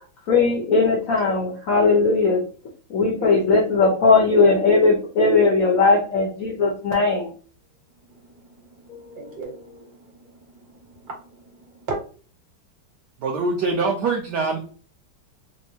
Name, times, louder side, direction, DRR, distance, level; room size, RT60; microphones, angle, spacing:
voice 1, 0.3-2.4 2.9-7.3 8.9-9.2, left 3 dB, 85° left, 2 dB, 0.7 m, -18 dB
voice 2, 3.2-3.6 8.1-12.0, right 2 dB, 50° right, 0 dB, 1.5 m, -37 dB
voice 3, 13.2-14.6, right 3 dB, 75° right, 0 dB, 1.0 m, -23 dB
4.3 x 2.0 x 2.7 m, 0.39 s
omnidirectional pair, 2.3 m